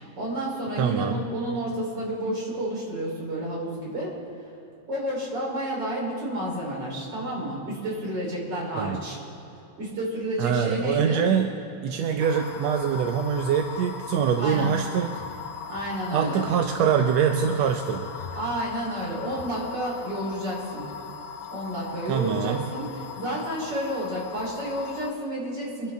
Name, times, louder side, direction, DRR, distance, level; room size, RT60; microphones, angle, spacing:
voice 1, 0.0-4.2 4.9-9.2 9.8-11.3 14.4-14.7 15.7-16.4 18.3-20.8 21.5-25.9, right 1 dB, 35° right, -4 dB, 4.2 m, -30 dB
voice 2, 0.8-1.2 8.8-9.0 10.4-11.5 11.8-15.1 16.1-18.1 22.1-22.6, right 7 dB, 75° right, 5 dB, 1.6 m, -24 dB
sound 1, 12.2-25.1, left 7 dB, 90° left, 2.2 m, -39 dB
24.5 x 11.5 x 3.5 m, 2.9 s
omnidirectional pair, 3.5 m